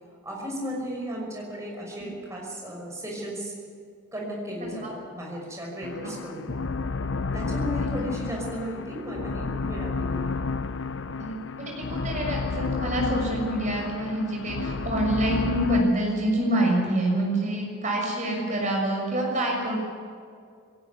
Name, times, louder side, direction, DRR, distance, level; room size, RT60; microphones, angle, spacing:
voice 1, 0.2-3.5 4.1-6.5 7.3-10.5, equal, 15° right, -2 dB, 5.8 m, -35 dB
sound 1, 5.8-15.8, left 4 dB, 60° left, 0.7 m, -31 dB
voice 2, 11.2-19.8, right 1 dB, 35° right, -1 dB, 6.5 m, -26 dB
20.5 x 18.0 x 9.5 m, 2.2 s
head